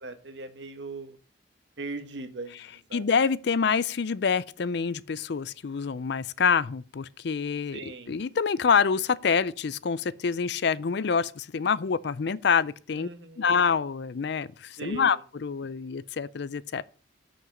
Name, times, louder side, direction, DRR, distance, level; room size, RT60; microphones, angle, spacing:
voice 1, 0.0-1.2 1.8-3.0 7.7-8.1 12.9-13.5 14.8-15.2, right 3 dB, 65° right, 1.5 m, -39 dB
voice 2, 2.9-7.8 8.1-13.1 13.4-16.8, left 6 dB, 60° left, 0.5 m, -26 dB
7.2 x 6.2 x 7.7 m
head